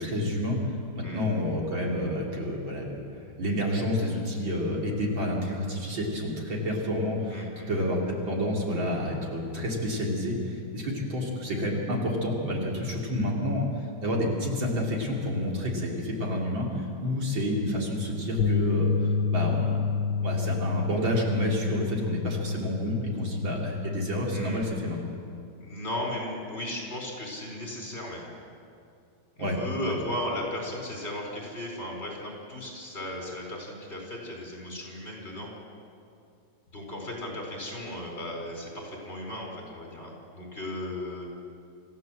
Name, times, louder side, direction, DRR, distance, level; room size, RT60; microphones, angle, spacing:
voice 1, 0.0-3.0 3.4-19.9 20.2-25.0 29.4-29.6, left 1 dB, 75° right, -2 dB, 4.0 m, -29 dB
voice 2, 7.3-7.7 24.3-24.7 25.6-28.2 29.3-35.5 36.7-41.3, left 1 dB, 30° left, -1 dB, 4.7 m, -36 dB
sound 1, 18.4-24.6, left 5 dB, 70° left, 1.6 m, -29 dB
26.5 x 15.0 x 7.7 m, 2.5 s
omnidirectional pair, 2.1 m